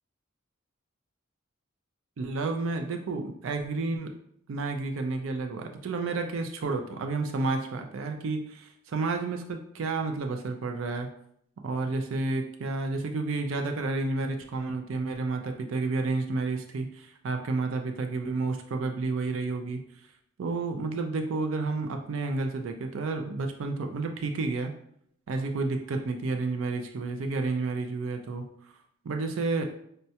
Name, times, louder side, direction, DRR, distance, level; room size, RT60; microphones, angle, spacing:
voice 1, 2.2-4.1 4.5-11.1 11.6-19.8 20.4-24.7 25.3-28.4 29.0-29.6, right 3 dB, 70° right, 5 dB, 0.4 m, -30 dB
5.3 x 2.2 x 2.8 m, 0.68 s
head